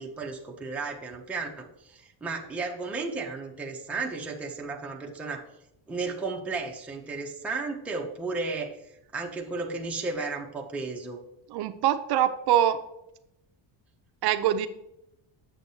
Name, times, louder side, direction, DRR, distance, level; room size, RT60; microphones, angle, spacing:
voice 1, 0.0-5.4 5.9-8.8 9.1-11.2, right 3 dB, 5° right, 0 dB, 0.5 m, -34 dB
voice 2, 11.5-12.8 14.2-14.7, right 11 dB, 55° right, 10 dB, 0.5 m, -24 dB
7.8 x 6.9 x 2.7 m, 0.85 s
cardioid pair, 180°, 47 cm